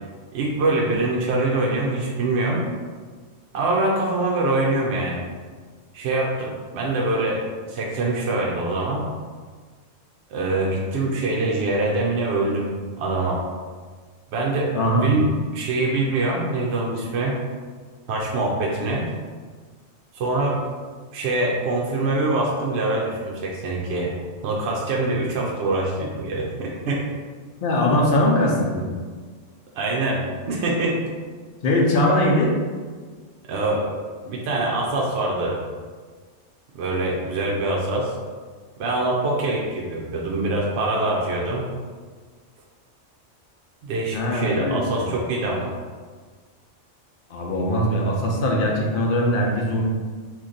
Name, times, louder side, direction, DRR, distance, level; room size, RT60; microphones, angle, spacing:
voice 1, 0.3-2.6 3.5-5.2 5.9-7.4 7.7-9.1 10.3-13.4 14.3-15.3 15.5-17.4 18.1-19.1 20.1-20.6 21.1-24.1 24.4-27.0 29.7-31.0 33.5-33.9 34.3-35.6 36.7-38.1 38.8-41.7 43.8-45.7, right 2 dB, 65° right, -2 dB, 0.8 m, -24 dB
voice 2, 14.7-15.1 27.6-28.8 31.6-32.5 44.1-45.1 47.3-49.8, left 1 dB, 55° left, -1 dB, 0.7 m, -21 dB
2.9 x 2.5 x 3.8 m, 1.5 s
omnidirectional pair, 1.3 m